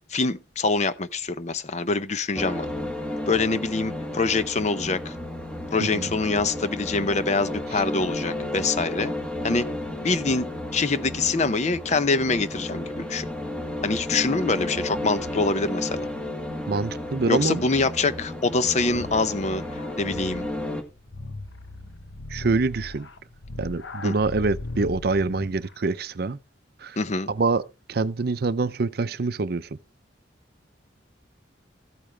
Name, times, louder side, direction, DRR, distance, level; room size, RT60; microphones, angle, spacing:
voice 1, 0.1-2.7 3.3-5.2 5.7-9.1 9.4-9.7 10.0-13.3 13.8-16.1 17.3-20.4 24.0-24.1 27.0-27.3, left 3 dB, 40° left, 0.6 m, -25 dB
sound 1, 2.3-20.8, left 1 dB, 5° left, 1.5 m, -32 dB
voice 2, 16.7-17.6 22.3-23.1 23.6-26.4 26.8-27.0 27.3-27.6 27.9-29.8, right 3 dB, 55° right, 0.5 m, -25 dB
sound 2, 18.8-25.7, left 2 dB, 75° left, 1.1 m, -39 dB
14.5 x 8.7 x 3.3 m
head